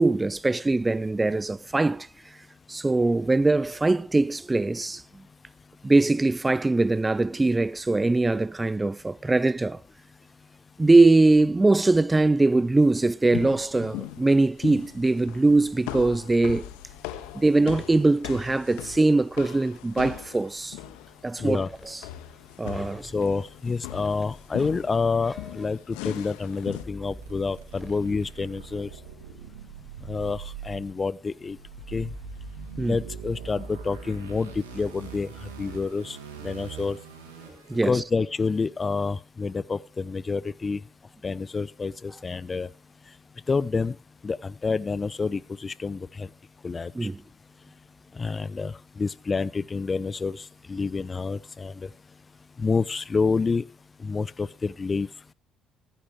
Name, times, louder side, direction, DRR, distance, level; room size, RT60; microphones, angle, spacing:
voice 1, 0.0-2.1 2.7-5.2 5.8-9.8 10.8-16.7 17.3-20.8 21.2-22.0 22.6-23.1 32.8-33.0 37.7-38.0 46.9-47.2, right 2 dB, 20° right, 0.7 m, -22 dB
sound 1, 13.3-26.8, left 14 dB, 75° left, 1.5 m, -40 dB
sound 2, 20.8-21.0 21.5-22.0 22.7-23.7 24.0-26.1 26.5-28.0, left 1 dB, 10° left, 4.6 m, -48 dB
voice 2, 23.1-28.9 30.1-31.6 31.9-32.1 32.9-35.3 35.6-36.2 36.4-37.0 37.8-40.8 41.2-42.7 43.5-43.9 44.2-46.3 46.6-46.9 48.2-48.7 49.0-51.9 52.6-53.6 54.0-55.1, left 4 dB, 30° left, 0.7 m, -28 dB
sound 3, 27.0-37.9, right 5 dB, 85° right, 3.6 m, -42 dB
24.5 x 11.5 x 3.2 m
hypercardioid pair, 50°, 0 cm